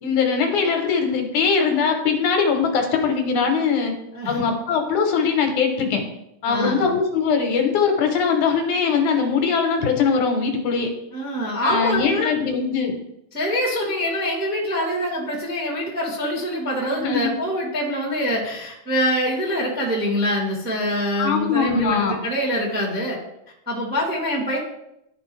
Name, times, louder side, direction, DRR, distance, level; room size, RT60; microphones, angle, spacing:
voice 1, 0.0-3.9 4.3-6.0 6.4-10.9 11.6-12.9 16.9-17.3 21.2-22.2, left 5 dB, 75° left, 3 dB, 2.3 m, -21 dB
voice 2, 4.1-4.5 6.5-6.9 11.1-12.3 13.3-23.2 23.6-24.6, equal, 5° right, -4 dB, 1.3 m, -24 dB
12.5 x 5.1 x 3.2 m, 0.82 s
omnidirectional pair, 3.7 m